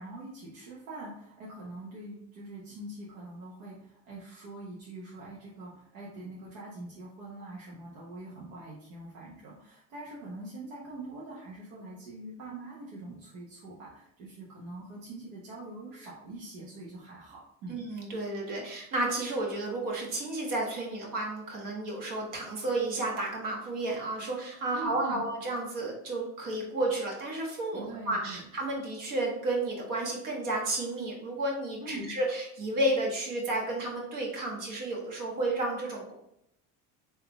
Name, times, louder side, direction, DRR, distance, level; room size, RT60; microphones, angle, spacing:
voice 1, 0.0-17.8 24.7-25.2 27.7-28.4 31.8-32.1, right 2 dB, 80° right, -6 dB, 1.1 m, -43 dB
voice 2, 17.7-36.1, right 2 dB, 55° right, -1 dB, 1.5 m, -32 dB
3.8 x 2.9 x 3.4 m, 0.78 s
supercardioid pair, 90°, 37 cm